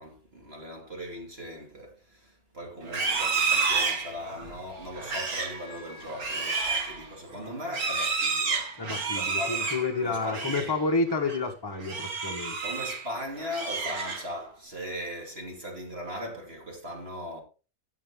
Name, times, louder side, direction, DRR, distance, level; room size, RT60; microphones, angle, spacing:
voice 1, 0.0-9.6 10.0-10.7 12.6-17.4, equal, 40° right, 2.7 m, -39 dB
Livestock farm animals working animals, 2.8-10.8 11.1-11.4 11.8-13.1 13.4-14.5, right 4 dB, 65° right, 2.3 m, -30 dB
voice 2, 8.8-12.6, left 3 dB, 15° left, 1.3 m, -29 dB
15.0 x 5.8 x 3.7 m
omnidirectional pair, 1.7 m